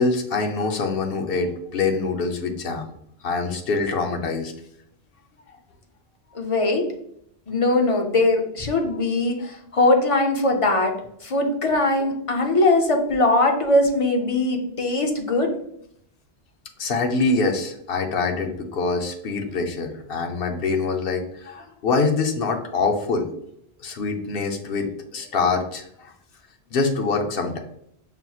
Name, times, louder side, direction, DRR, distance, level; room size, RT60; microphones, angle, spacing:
voice 1, 0.0-2.9 3.2-4.5 16.8-23.3 23.8-24.9 25.1-26.1 26.7-27.6, left 4 dB, 65° left, 4 dB, 0.8 m, -24 dB
voice 2, 6.3-6.9 7.5-10.9 11.2-15.5, left 2 dB, 40° left, 3 dB, 0.5 m, -21 dB
5.5 x 2.9 x 2.3 m, 0.72 s
omnidirectional pair, 1.1 m